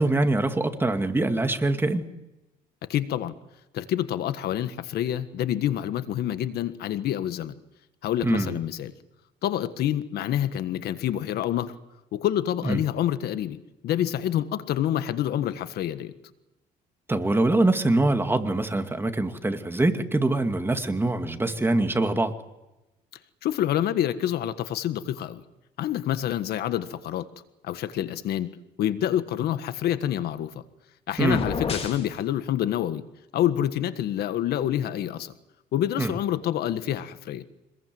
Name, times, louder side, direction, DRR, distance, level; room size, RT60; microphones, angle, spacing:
voice 1, 0.0-2.1 8.2-8.6 12.6-12.8 17.1-22.3 31.2-31.5 36.0-36.1, right 2 dB, 15° right, 7 dB, 2.3 m, -24 dB
voice 2, 2.9-3.3 3.7-7.5 8.0-8.9 9.4-11.7 12.1-13.6 13.8-16.1 23.4-25.4 25.8-27.3 27.6-28.5 28.8-30.5 31.1-33.0 33.3-35.3 35.7-37.4, left 11 dB, 70° left, 12 dB, 1.5 m, -27 dB
sound 1, 31.1-32.1, left 5 dB, 35° left, 4.5 m, -31 dB
26.0 x 21.0 x 7.8 m, 0.98 s
cardioid pair, 110°, 17 cm